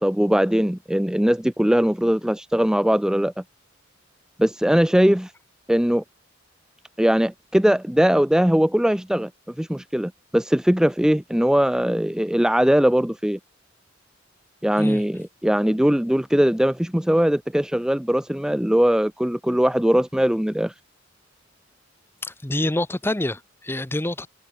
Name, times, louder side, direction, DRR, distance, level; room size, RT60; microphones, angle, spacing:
voice 1, 0.0-3.3 4.4-5.3 5.7-6.0 7.0-13.4 14.6-20.7, equal, 5° right, 0.5 m, -20 dB
voice 2, 22.2-24.3, left 1 dB, 10° left, 1.0 m, -26 dB
head